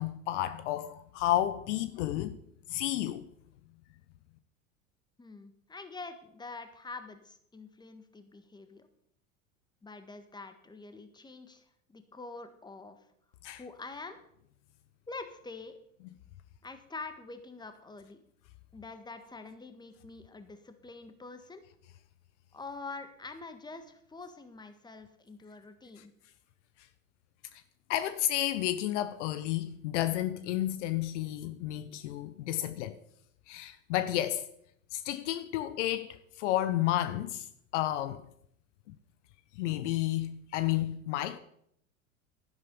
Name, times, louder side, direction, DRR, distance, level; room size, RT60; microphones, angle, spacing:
voice 1, 0.0-2.4 2.7-3.3 13.4-13.6 27.9-33.0 33.5-34.5 34.9-37.5 37.7-38.2 39.6-41.4, left 13 dB, 60° left, 0.9 m, -31 dB
voice 2, 5.2-8.9 9.8-11.6 11.9-13.0 13.5-14.2 15.1-15.7 16.6-18.2 18.7-21.6 22.5-26.1, left 3 dB, 10° left, 1.6 m, -45 dB
11.5 x 11.0 x 5.4 m
hypercardioid pair, 85°, 41 cm